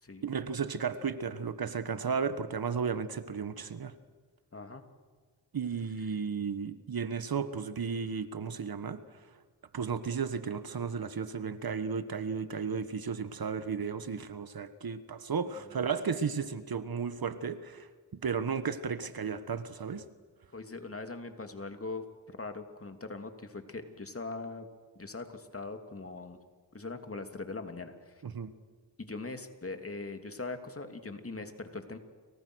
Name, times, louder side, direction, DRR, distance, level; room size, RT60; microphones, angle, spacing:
voice 1, 0.2-3.9 5.5-9.0 9.7-17.9 18.2-20.0 28.2-28.5, right 6 dB, 55° right, 12 dB, 1.5 m, -34 dB
voice 2, 4.5-4.8 15.7-15.8 20.5-24.7 24.9-26.4 26.7-28.2 29.0-32.0, left 3 dB, 30° left, 6 dB, 2.9 m, -41 dB
30.0 x 24.5 x 6.4 m, 1.5 s
cardioid pair, 60°, 42 cm